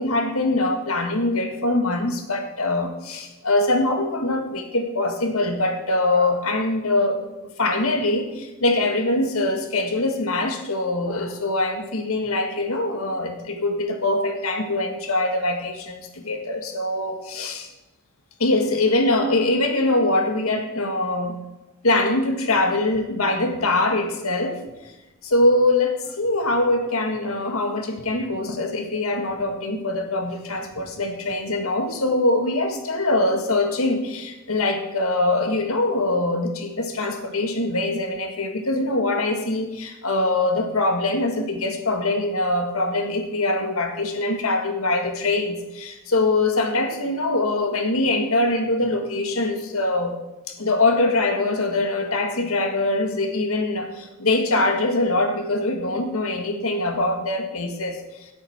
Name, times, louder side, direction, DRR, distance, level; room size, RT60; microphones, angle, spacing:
voice 1, 0.0-17.7 18.4-21.4 21.8-24.9 25.2-50.1 50.5-58.3, left 2 dB, 90° left, 4 dB, 1.9 m, -23 dB
17.0 x 8.2 x 4.4 m, 1.0 s
head